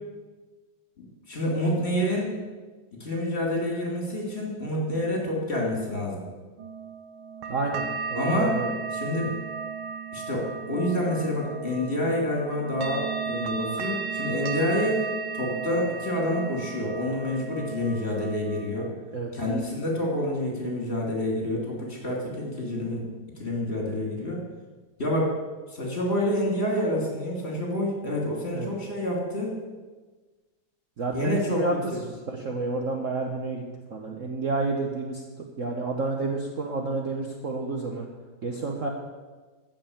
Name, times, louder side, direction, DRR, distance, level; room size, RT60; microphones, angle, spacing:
voice 1, 1.0-2.3 2.9-6.2 8.1-8.6 8.9-9.3 10.1-15.1 15.3-18.9 19.3-23.0 23.4-24.4 25.0-25.3 25.7-29.6 31.1-32.0, left 1 dB, 30° left, -2 dB, 3.2 m, -28 dB
sound 1, 6.6-18.9, right 5 dB, 80° right, 1.8 m, -35 dB
voice 2, 7.5-8.7 19.1-19.3 28.5-28.7 31.0-31.7 32.3-33.6 33.9-35.2 35.6-38.1 38.4-38.9, right 3 dB, 45° right, 1 dB, 1.3 m, -30 dB
14.5 x 5.7 x 8.5 m, 1.3 s
omnidirectional pair, 2.2 m